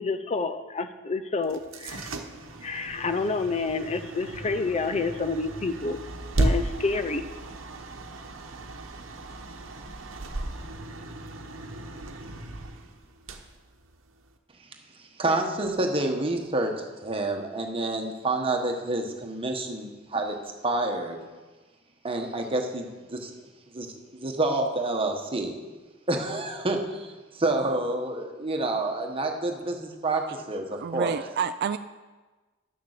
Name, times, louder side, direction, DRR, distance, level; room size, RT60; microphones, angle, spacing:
voice 1, 0.0-2.1 2.6-6.0 6.4-7.2, left 3 dB, 35° left, 10 dB, 0.5 m, -29 dB
sound 1, 1.4-14.4, right 2 dB, 75° right, 1.0 m, -35 dB
voice 2, 15.2-20.3 20.6-21.2 22.0-23.3 23.7-25.5 26.1-30.2 30.5-31.2, right 2 dB, 30° right, 3 dB, 1.2 m, -28 dB
voice 3, 30.7-31.8, right 7 dB, 55° right, 11 dB, 0.3 m, -29 dB
11.0 x 6.8 x 6.6 m, 1.3 s
head